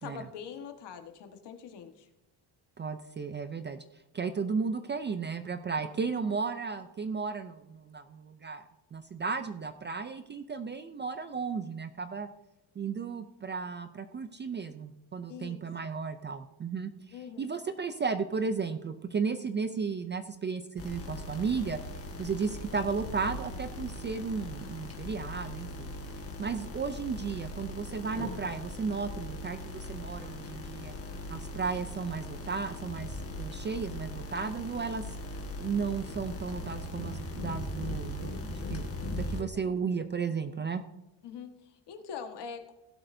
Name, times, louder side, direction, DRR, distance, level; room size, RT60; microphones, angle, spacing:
voice 1, 0.0-2.1 5.8-5.9 15.3-15.7 17.1-17.5 39.4-39.7 41.2-42.7, left 7 dB, 60° left, 6 dB, 1.5 m, -44 dB
voice 2, 2.8-3.8 4.1-8.6 8.9-12.3 12.8-21.8 22.2-25.9 26.4-30.9 31.3-35.0 35.6-40.8, right 5 dB, 25° right, 10 dB, 0.4 m, -34 dB
sound 1, 20.8-39.4, left 2 dB, 30° left, 1.6 m, -39 dB
16.5 x 12.0 x 2.6 m, 0.99 s
cardioid pair, 165°, 46 cm